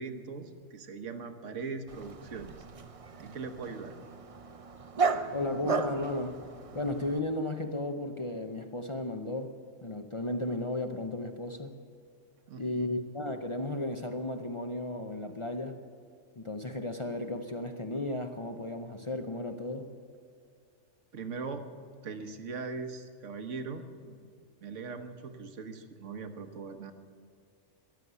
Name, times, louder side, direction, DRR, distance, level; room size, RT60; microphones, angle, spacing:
voice 1, 0.0-2.6 3.2-4.0 12.5-13.0 21.1-21.7 22.0-24.3 24.6-26.9, right 4 dB, 75° right, 7 dB, 1.4 m, -40 dB
Dog, 1.9-7.2, right 5 dB, 35° right, 0.6 m, -35 dB
voice 2, 5.3-6.4 6.7-9.5 9.8-11.8 12.6-15.8 16.4-19.9, left 2 dB, 30° left, 5 dB, 0.6 m, -34 dB
14.0 x 11.0 x 8.1 m, 2.3 s
omnidirectional pair, 1.3 m